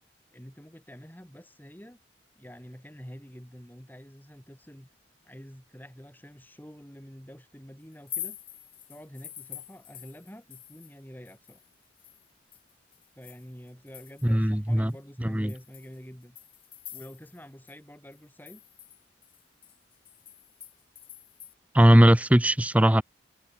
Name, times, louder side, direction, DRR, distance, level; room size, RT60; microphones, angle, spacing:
voice 1, 0.3-2.0 2.3-4.9 5.2-8.4 8.9-11.6 13.1-16.4 16.9-18.6, equal, 10° left, 3.3 m, -47 dB
sound 1, 7.9-11.0 11.3-14.5 14.9-15.0 15.5-17.4 17.7-17.8 18.1-21.5, left 10 dB, 30° left, 4.0 m, -45 dB
voice 2, 14.2-14.9 15.2-15.5 21.7-23.0, equal, 10° right, 0.8 m, -19 dB
head